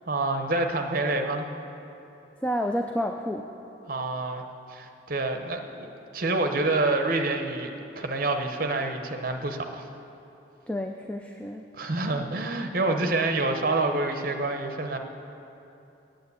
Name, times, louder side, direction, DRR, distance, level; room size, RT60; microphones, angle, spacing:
voice 1, 0.1-1.5 3.9-7.7 8.0-9.9 11.7-15.0, right 2 dB, 50° right, 5 dB, 0.8 m, -27 dB
voice 2, 2.4-3.5 10.7-11.6 12.9-13.0, equal, 5° left, 4 dB, 0.3 m, -30 dB
9.5 x 7.8 x 8.2 m, 2.9 s
head